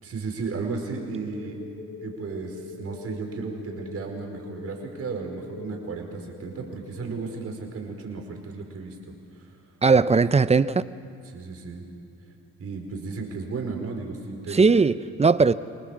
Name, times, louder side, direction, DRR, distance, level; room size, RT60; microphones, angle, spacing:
voice 1, 0.0-1.6 2.0-9.0 9.3-9.6 11.2-11.8 12.6-14.7, right 4 dB, 50° right, 2 dB, 5.0 m, -34 dB
sound 1, 1.0-7.4, left 4 dB, 55° left, 2.6 m, -43 dB
voice 2, 9.8-10.8 14.5-15.5, right 4 dB, 20° right, 15 dB, 0.6 m, -19 dB
27.5 x 19.5 x 7.4 m, 2.6 s
cardioid pair, 90°, 30 cm